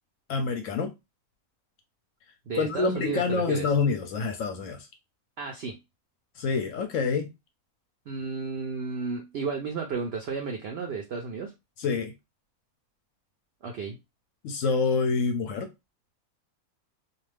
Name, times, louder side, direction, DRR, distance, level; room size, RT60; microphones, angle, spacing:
voice 1, 0.3-0.9 2.6-4.9 6.4-7.3 11.8-12.1 14.4-15.7, left 5 dB, 70° left, 0.8 m, -27 dB
voice 2, 2.5-3.6 5.4-5.8 8.1-11.5 13.6-14.0, right 5 dB, 70° right, 0.6 m, -33 dB
2.5 x 2.3 x 3.2 m
omnidirectional pair, 1.6 m